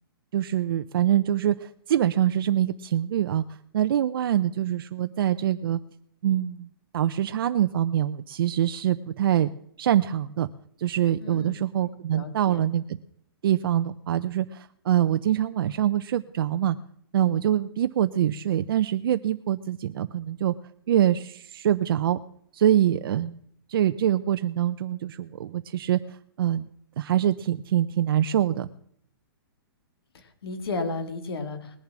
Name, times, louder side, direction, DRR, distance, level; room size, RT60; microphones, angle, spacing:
voice 1, 0.3-5.8 6.2-9.5 9.8-10.5 10.8-13.0 13.4-16.8 17.1-20.5 20.9-22.2 22.5-23.4 23.7-26.7 27.0-28.7, right 11 dB, 65° right, 10 dB, 0.6 m, -24 dB
voice 2, 11.2-12.7 30.1-31.8, left 3 dB, 80° left, 8 dB, 2.5 m, -34 dB
20.0 x 7.3 x 6.1 m, 0.67 s
hypercardioid pair, 150°, 13 cm